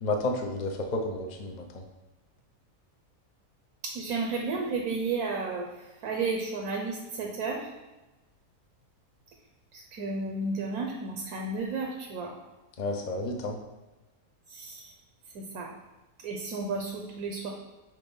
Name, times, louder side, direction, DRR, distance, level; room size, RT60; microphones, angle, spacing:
voice 1, 0.0-1.8 12.8-13.6, left 2 dB, 40° left, 3 dB, 0.6 m, -31 dB
voice 2, 3.8-5.7 6.0-7.7 9.7-12.3 14.5-14.9 15.3-15.7 16.2-17.5, right 3 dB, 80° right, 1 dB, 1.3 m, -32 dB
4.4 x 3.9 x 5.4 m, 1.1 s
omnidirectional pair, 1.5 m